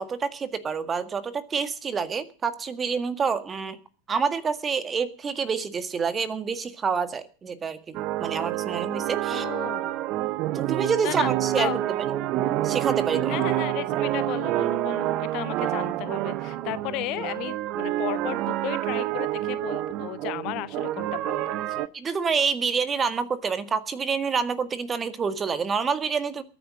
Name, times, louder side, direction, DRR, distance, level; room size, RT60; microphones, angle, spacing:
voice 1, 0.0-3.8 4.1-9.5 10.5-11.7 12.6-13.4 21.9-26.4, right 5 dB, 20° right, 12 dB, 1.8 m, -27 dB
sound 1, 7.9-21.9, right 14 dB, 40° right, 0.9 m, -28 dB
voice 2, 9.3-10.1 11.0-11.3 11.6-11.8 13.3-21.9, left 18 dB, 40° left, 16 dB, 0.8 m, -34 dB
22.0 x 10.0 x 5.1 m, 0.39 s
figure-of-eight pair, 90°, 0 cm